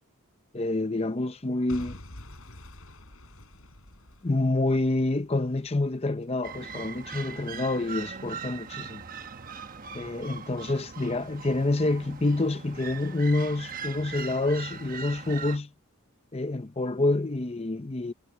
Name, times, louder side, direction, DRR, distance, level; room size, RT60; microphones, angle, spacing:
voice 1, 0.5-2.0 4.2-9.0 9.9-15.7 16.3-18.1, left 2 dB, 30° left, 0.6 m, -27 dB
Boom / Shatter / Crushing, 1.7-5.7 6.2-6.3, left 1 dB, 70° left, 4.8 m, -47 dB
sound 1, 6.4-15.6, right 5 dB, 40° right, 1.1 m, -40 dB
head